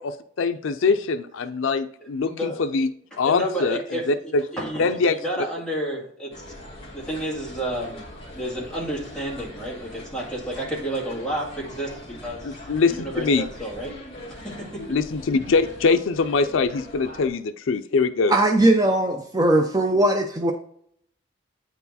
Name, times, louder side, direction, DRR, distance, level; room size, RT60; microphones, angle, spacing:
voice 1, 0.0-2.9 3.2-3.8 4.1-4.4 4.8-5.2 12.4-13.4 14.9-18.3, left 4 dB, 80° left, 10 dB, 0.5 m, -23 dB
voice 2, 2.0-2.6 3.1-4.1 4.5-6.3 6.9-8.1 8.3-12.6 12.9-14.0 14.3-15.0, right 1 dB, 5° left, -4 dB, 2.0 m, -31 dB
sound 1, 6.3-17.3, left 1 dB, 25° left, 2.1 m, -41 dB
voice 3, 18.3-20.5, right 1 dB, 20° right, 4 dB, 0.5 m, -19 dB
8.8 x 4.6 x 4.1 m, 0.65 s
head